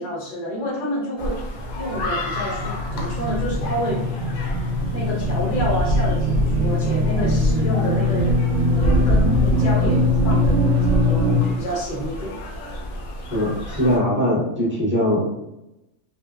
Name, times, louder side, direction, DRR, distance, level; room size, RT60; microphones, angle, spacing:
voice 1, 0.0-1.4 1.7-4.1 4.9-8.3 8.7-12.4, equal, 55° left, -2 dB, 0.6 m, -28 dB
sound 1, 1.2-14.0, equal, 75° left, 1.0 m, -26 dB
sound 2, 1.6-11.4, left 1 dB, 70° right, 0.9 m, -22 dB
voice 2, 13.3-15.2, equal, 15° right, -8 dB, 0.4 m, -21 dB
2.7 x 2.0 x 2.2 m, 0.91 s
omnidirectional pair, 1.5 m